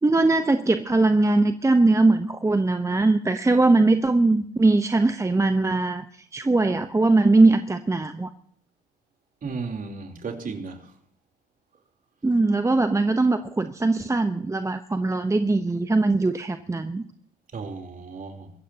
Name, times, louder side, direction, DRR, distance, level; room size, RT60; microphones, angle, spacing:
voice 1, 0.0-6.0 6.3-8.3 12.2-17.0, right 2 dB, 15° right, 0.9 m, -21 dB
voice 2, 9.4-10.9 17.5-18.5, right 4 dB, 40° right, 3.6 m, -34 dB
24.5 x 15.0 x 2.9 m
hypercardioid pair, 65°, 21 cm